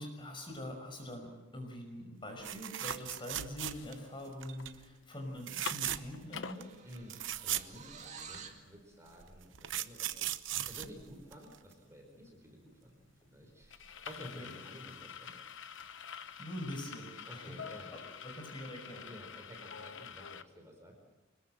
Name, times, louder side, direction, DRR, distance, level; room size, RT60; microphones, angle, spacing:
voice 1, 0.0-6.7 14.4-14.5 16.1-17.6 18.2-19.1, left 1 dB, 25° left, 3 dB, 5.5 m, -44 dB
sound 1, 2.4-4.1 4.4-4.7 5.4-6.2 6.6-6.7 6.9-8.4 9.2-11.7 13.6-13.8 14.1-14.2, right 12 dB, 70° right, 0.9 m, -38 dB
sound 2, 3.6-4.7 5.0-5.1 5.4-6.6 7.2-7.3 7.6-20.4, left 6 dB, 75° left, 1.0 m, -48 dB
sound 3, 6.2-8.7, right 6 dB, 35° right, 2.2 m, -51 dB
voice 2, 6.8-10.4 10.6-15.4 17.2-18.1 19.0-21.0, equal, 15° right, 2 dB, 5.0 m, -52 dB
25.0 x 21.0 x 7.6 m, 1.1 s
head